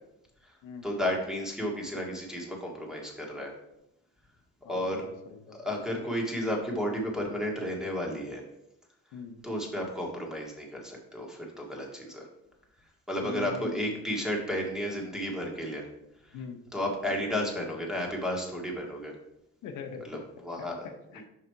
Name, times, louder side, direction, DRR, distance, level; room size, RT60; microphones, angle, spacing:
voice 1, 0.8-3.5 4.7-5.1 5.5-8.4 9.4-12.3 13.1-15.9 16.2-16.4 16.7-19.1 20.0-20.7, equal, ahead, -1 dB, 1.9 m, -32 dB
voice 2, 4.6-5.6 9.1-9.4 13.2-13.9 16.3-16.6 19.6-20.0 20.6-21.2, left 5 dB, 85° left, 5 dB, 0.8 m, -42 dB
5.6 x 4.9 x 4.6 m, 0.85 s
cardioid pair, 90°, 30 cm